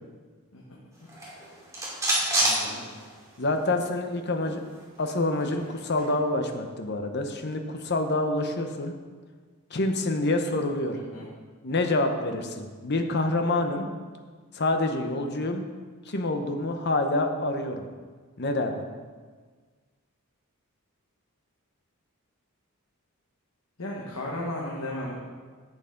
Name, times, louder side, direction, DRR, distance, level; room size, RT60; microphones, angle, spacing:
sound 1, 1.0-3.5 3.8-3.9 4.2-6.1, right 1 dB, 15° right, 2.5 m, -29 dB
voice 1, 2.4-2.8 10.9-11.3 23.8-25.2, left 1 dB, 75° left, -3 dB, 1.4 m, -35 dB
voice 2, 3.4-4.6 5.0-8.9 9.7-11.0 11.6-13.9 14.5-15.6 16.1-17.9 18.4-18.8, left 2 dB, 50° left, 5 dB, 0.9 m, -27 dB
10.5 x 8.2 x 3.9 m, 1.5 s
head